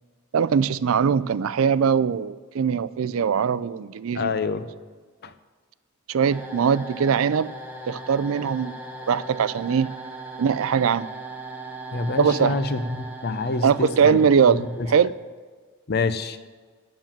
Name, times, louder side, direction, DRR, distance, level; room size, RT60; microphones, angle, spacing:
voice 1, 0.3-4.3 6.1-7.5 7.9-8.7 9.1-9.9 10.4-11.1 12.2-12.6 13.6-14.6 14.9-15.1, right 7 dB, 70° right, 17 dB, 0.4 m, -21 dB
voice 2, 4.1-4.7 5.2-5.3 11.9-14.2 14.5-14.9 15.9-16.4, left 3 dB, 50° left, 11 dB, 0.6 m, -27 dB
sound 1, 6.3-15.2, right 2 dB, 10° right, 1.2 m, -39 dB
9.3 x 7.4 x 7.4 m, 1.5 s
head